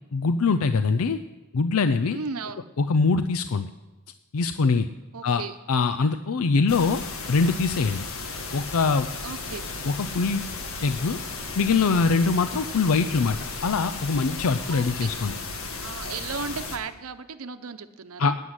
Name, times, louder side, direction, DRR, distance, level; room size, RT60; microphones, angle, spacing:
voice 1, 0.1-1.2 1.5-2.2 2.8-3.7 4.3-4.9 5.2-5.4 5.7-7.0 7.3-8.1 8.5-9.1 9.8-10.4 10.8-11.2 11.6-15.3 18.2-18.4, left 4 dB, 80° left, 10 dB, 0.5 m, -23 dB
voice 2, 2.1-2.6 5.1-5.5 9.2-9.6 14.7-15.2 15.8-18.3, right 5 dB, 80° right, 10 dB, 0.8 m, -35 dB
sound 1, 6.7-16.8, left 3 dB, 65° left, 1.6 m, -35 dB
12.5 x 9.1 x 9.7 m, 1.1 s
head